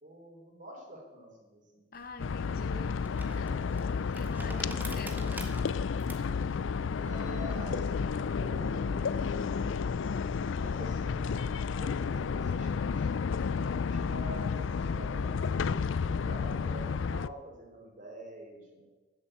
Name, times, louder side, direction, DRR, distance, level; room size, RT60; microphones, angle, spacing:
voice 1, 0.0-1.9 3.2-4.0 6.9-9.5 10.6-18.9, right 1 dB, 45° right, 0 dB, 3.6 m, -47 dB
voice 2, 1.9-3.0 3.8-5.6, left 2 dB, 50° left, 8 dB, 1.0 m, -44 dB
sound 1, 1.9-8.6, right 1 dB, 10° right, 1.4 m, -47 dB
sound 2, 2.2-17.3, left 5 dB, 80° left, 0.4 m, -31 dB
13.0 x 7.4 x 8.9 m, 1.2 s
head